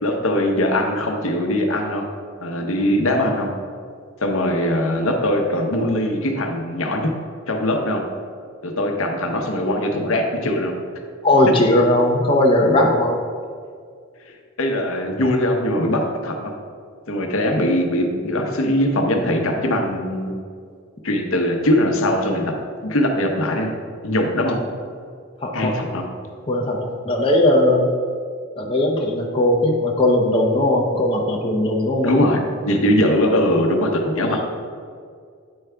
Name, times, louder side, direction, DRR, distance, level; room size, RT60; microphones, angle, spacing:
voice 1, 0.0-2.1 2.4-3.5 4.2-7.2 7.5-8.0 8.6-10.7 14.2-16.5 17.1-20.4 21.0-22.6 22.8-23.7 24.0-24.6 25.5-26.0 32.0-34.4, left 1 dB, 70° left, 2 dB, 0.8 m, -21 dB
voice 2, 11.2-13.2 25.4-25.7 26.5-27.9 28.6-32.2 34.1-34.4, left 1 dB, 25° left, -1 dB, 0.5 m, -18 dB
8.8 x 4.7 x 3.3 m, 2.1 s
head